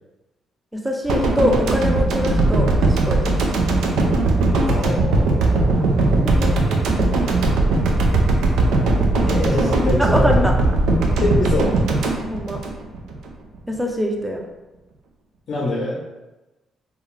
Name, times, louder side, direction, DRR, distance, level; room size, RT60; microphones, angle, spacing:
voice 1, 0.7-3.4 6.0-6.5 10.0-10.5 12.3-12.6 13.7-14.5, equal, 10° right, 2 dB, 0.5 m, -24 dB
sound 1, 1.0-11.4, right 1 dB, 60° right, 1.0 m, -26 dB
sound 2, 1.1-13.3 13.5-13.7, right 2 dB, 75° right, 0.4 m, -19 dB
voice 2, 4.6-5.8 9.2-10.5 11.2-11.8 15.5-16.0, left 2 dB, 60° left, -5 dB, 0.6 m, -24 dB
2.4 x 2.3 x 3.1 m, 1.1 s
supercardioid pair, 55°, 0 cm